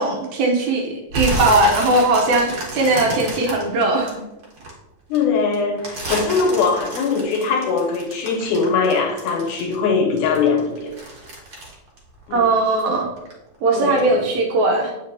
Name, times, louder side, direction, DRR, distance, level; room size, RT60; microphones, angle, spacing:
voice 1, 0.0-4.2 12.3-13.1 13.6-14.9, right 2 dB, 75° right, 1.8 m, -19 dB
sound 1, 1.1-4.7 5.1-9.9 10.2-12.9 13.2-13.6 14.0-14.1, right 1 dB, 50° right, 1.4 m, -30 dB
voice 2, 5.1-10.9 12.3-12.5 13.7-14.2, left 5 dB, 75° left, 2.0 m, -21 dB
8.3 x 5.1 x 2.7 m
omnidirectional pair, 3.8 m